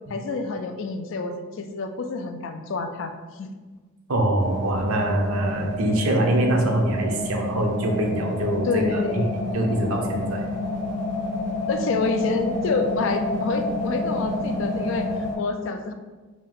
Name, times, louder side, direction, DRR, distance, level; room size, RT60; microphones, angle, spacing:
voice 1, 0.1-3.6 8.6-9.3 11.7-15.1 15.4-15.9, left 3 dB, 65° left, 6 dB, 0.3 m, -28 dB
voice 2, 4.1-9.0 9.5-10.4, right 1 dB, 85° right, 1 dB, 0.6 m, -24 dB
sound 1, 4.4-15.4, left 1 dB, 40° left, 1.0 m, -29 dB
3.6 x 2.5 x 3.6 m, 1.3 s
head